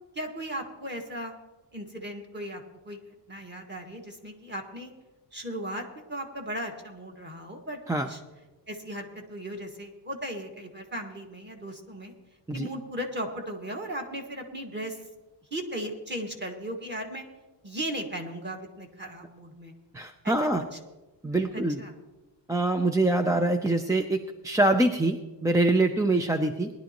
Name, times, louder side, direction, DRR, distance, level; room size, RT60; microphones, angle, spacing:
voice 1, 0.2-1.3 1.7-3.0 3.3-4.9 5.3-8.2 8.7-12.1 12.5-15.0 15.5-17.2 17.6-19.7 20.2-20.3 20.7-20.8 21.4-21.9 26.0-26.4, right 1 dB, 25° right, 2 dB, 1.8 m, -37 dB
voice 2, 19.9-20.6 21.2-21.8 22.5-26.7, right 2 dB, 5° right, 6 dB, 0.4 m, -24 dB
20.0 x 11.5 x 3.0 m, 1.1 s
wide cardioid pair, 135°, 46 cm